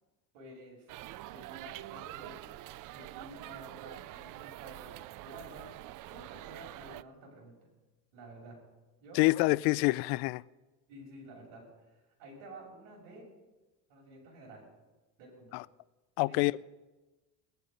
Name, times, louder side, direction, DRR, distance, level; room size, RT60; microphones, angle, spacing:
voice 1, 0.3-0.9 1.2-2.5 2.9-7.6 8.1-8.6 9.0-9.6 10.9-11.6 12.2-13.2 13.9-14.7 15.2-15.5 16.2-16.4, right 1 dB, 85° right, 6.5 m, -51 dB
sound 1, 0.9-7.0, right 16 dB, 55° right, 0.5 m, -46 dB
voice 2, 9.1-10.4 15.5-15.6 16.2-16.6, left 22 dB, 80° left, 0.5 m, -26 dB
19.5 x 11.5 x 5.3 m
cardioid pair, 120°, 39 cm